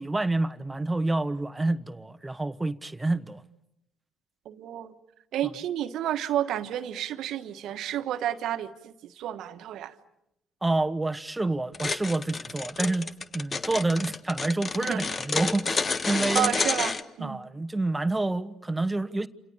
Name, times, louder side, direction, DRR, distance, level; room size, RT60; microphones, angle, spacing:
voice 1, 0.0-3.4 10.6-13.1 13.3-16.6 17.2-19.3, right 2 dB, 15° right, 1.2 m, -28 dB
voice 2, 4.4-4.9 5.3-9.9 14.8-15.1 16.1-17.4, right 11 dB, 65° right, 1.5 m, -31 dB
sound 1, 11.7-17.0, left 4 dB, 35° left, 1.5 m, -29 dB
28.5 x 28.0 x 7.2 m
hypercardioid pair, 50°, 0 cm